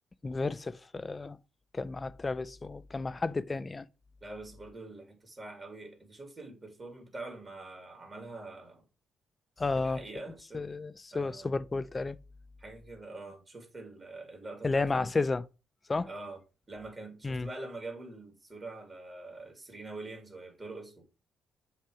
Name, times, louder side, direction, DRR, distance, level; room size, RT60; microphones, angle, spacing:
voice 1, 0.2-1.4 1.7-3.9 9.6-10.0 10.5-12.2 14.6-15.4 15.9-16.1 17.2-17.5, left 3 dB, 25° left, 0.4 m, -32 dB
voice 2, 4.2-8.8 9.8-10.7 11.1-11.5 12.6-15.1 16.1-16.4 16.7-21.0, right 2 dB, 30° right, 2.3 m, -44 dB
7.4 x 3.0 x 4.7 m
cardioid pair, 90°, 0 cm